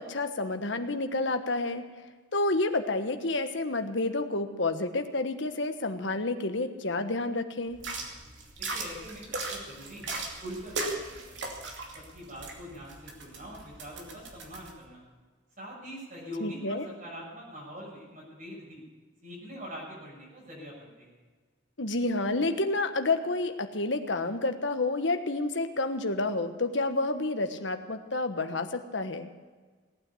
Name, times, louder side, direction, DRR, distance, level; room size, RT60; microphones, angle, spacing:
voice 1, 0.0-1.8 2.3-7.8 16.4-16.8 21.8-29.3, left 2 dB, 65° left, 7 dB, 1.3 m, -29 dB
sound 1, 7.7-14.7, right 2 dB, 60° right, 2.8 m, -38 dB
voice 2, 8.6-11.5 11.9-15.0 15.6-18.8 19.2-21.2, equal, 40° right, -6 dB, 6.3 m, -43 dB
18.5 x 9.3 x 8.4 m, 1.4 s
head